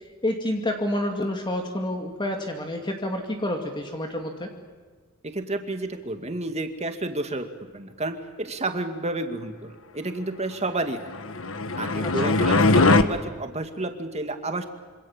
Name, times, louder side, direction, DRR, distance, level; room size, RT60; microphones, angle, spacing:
voice 1, 0.2-4.5 12.0-12.3, left 1 dB, 25° left, 3 dB, 2.3 m, -28 dB
voice 2, 5.2-11.1 11.8-14.6, right 2 dB, 30° right, 6 dB, 2.3 m, -31 dB
sound 1, 11.1-13.0, left 3 dB, 80° left, 1.5 m, -20 dB
26.5 x 26.0 x 7.4 m, 1.5 s
head